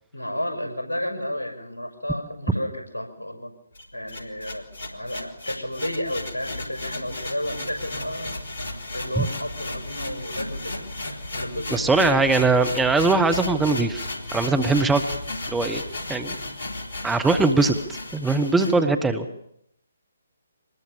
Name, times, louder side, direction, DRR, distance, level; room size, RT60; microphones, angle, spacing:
voice 1, 0.1-3.5 3.9-8.3 8.9-12.2 18.6-18.8, left 1 dB, 70° left, 6 dB, 6.1 m, -32 dB
sound 1, 3.7-18.7, left 2 dB, 55° left, 3.6 m, -34 dB
voice 2, 11.7-14.1 14.3-15.0 15.5-15.8 16.1-16.4 17.0-17.8 18.1-19.2, right 3 dB, 5° right, 8 dB, 1.3 m, -21 dB
24.5 x 20.5 x 7.2 m, 0.73 s
figure-of-eight pair, 140°, 0 cm